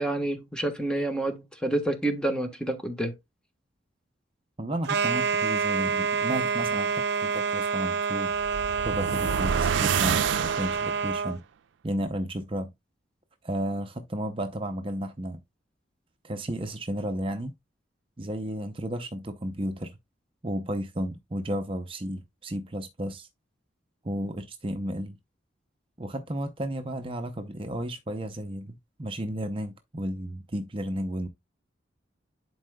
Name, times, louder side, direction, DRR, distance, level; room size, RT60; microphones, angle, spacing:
voice 1, 0.0-3.1, right 1 dB, 5° left, 1.2 m, -28 dB
voice 2, 4.6-8.4 8.8-11.4 11.8-12.7 13.4-15.4 16.2-17.5 18.2-20.0 20.4-23.3 24.0-25.2 26.0-31.3, right 1 dB, 30° right, 0.7 m, -33 dB
sound 1, 4.8-11.4, right 5 dB, 60° right, 0.8 m, -28 dB
sound 2, 8.3-11.2, right 8 dB, 85° right, 0.4 m, -28 dB
11.0 x 4.6 x 2.3 m
head